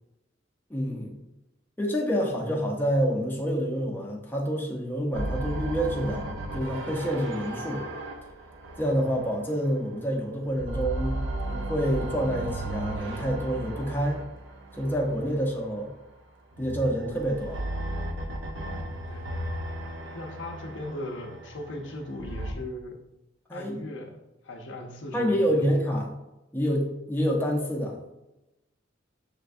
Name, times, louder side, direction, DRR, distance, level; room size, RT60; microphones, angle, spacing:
voice 1, 0.7-1.1 1.8-7.9 8.8-14.2 14.8-15.9 16.6-17.6 23.5-23.8 25.1-26.1 26.5-28.0, equal, 10° left, -2 dB, 0.7 m, -27 dB
sound 1, 5.1-10.1 10.4-15.8 16.5-22.5, right 1 dB, 85° right, 0.6 m, -35 dB
voice 2, 20.1-23.0 23.5-24.2 24.4-25.9, left 1 dB, 75° left, 3 dB, 0.6 m, -38 dB
6.7 x 2.2 x 2.5 m, 0.94 s
head